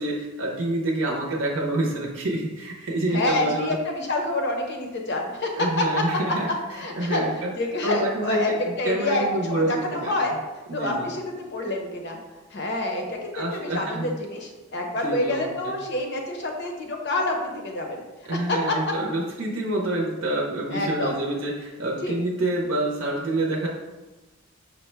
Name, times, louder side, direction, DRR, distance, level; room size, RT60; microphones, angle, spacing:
voice 1, 0.0-3.7 5.6-6.5 6.9-7.5 7.8-10.2 10.7-11.1 13.3-14.1 15.0-15.7 18.3-23.7, right 1 dB, 60° right, -2 dB, 0.6 m, -27 dB
voice 2, 3.1-5.8 6.7-8.5 8.8-10.3 10.7-12.2 12.5-18.0 18.5-18.7 20.7-21.1 22.0-22.1, left 2 dB, 50° left, 2 dB, 0.7 m, -27 dB
5.6 x 2.1 x 4.4 m, 1.1 s
head